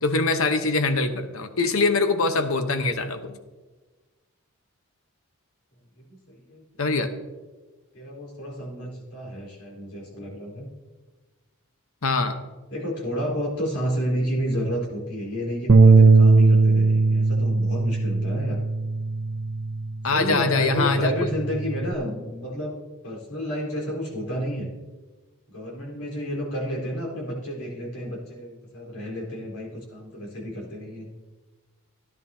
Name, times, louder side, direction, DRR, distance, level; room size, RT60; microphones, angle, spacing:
voice 1, 0.0-3.4 6.8-7.1 12.0-12.4 20.0-21.1, left 3 dB, 65° left, 8 dB, 0.9 m, -23 dB
voice 2, 5.9-6.7 7.9-10.7 12.7-18.6 20.1-22.7 23.0-24.7 25.5-31.1, equal, 85° left, -2 dB, 4.1 m, -31 dB
Bass guitar, 15.7-20.2 20.6-21.9, right 3 dB, 50° right, 0.6 m, -19 dB
16.5 x 11.0 x 2.8 m, 1.3 s
head